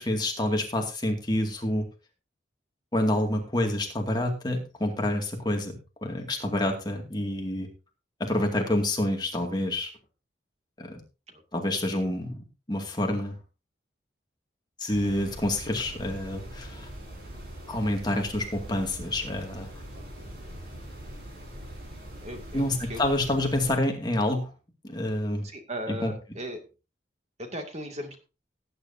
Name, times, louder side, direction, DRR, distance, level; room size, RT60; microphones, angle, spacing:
voice 1, 0.0-1.9 2.9-7.7 8.2-9.9 10.8-11.0 11.5-13.4 14.8-16.9 17.7-19.7 22.5-24.5 24.8-25.5 26.0-26.1, left 1 dB, 25° left, 2 dB, 2.3 m, -28 dB
sound 1, 14.9-23.7, right 1 dB, 60° right, 5.4 m, -42 dB
voice 2, 19.9-20.3 22.2-23.0 25.4-26.6 27.4-28.2, equal, 35° right, 4 dB, 2.3 m, -38 dB
18.0 x 9.4 x 2.8 m, 0.30 s
head